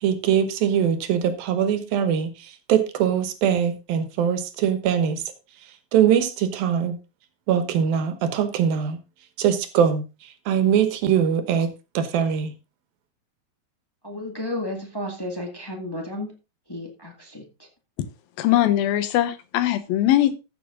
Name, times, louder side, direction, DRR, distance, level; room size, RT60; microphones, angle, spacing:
voice 1, 0.0-5.2 5.9-7.0 7.5-9.0 9.4-10.0 10.5-11.7 11.9-12.5, right 8 dB, 90° right, 3.1 m, -22 dB
voice 2, 14.0-16.3 16.7-17.7, left 1 dB, 20° left, 0.7 m, -33 dB
voice 3, 18.4-20.4, left 13 dB, 85° left, 2.9 m, -21 dB
14.0 x 6.8 x 3.8 m
omnidirectional pair, 4.0 m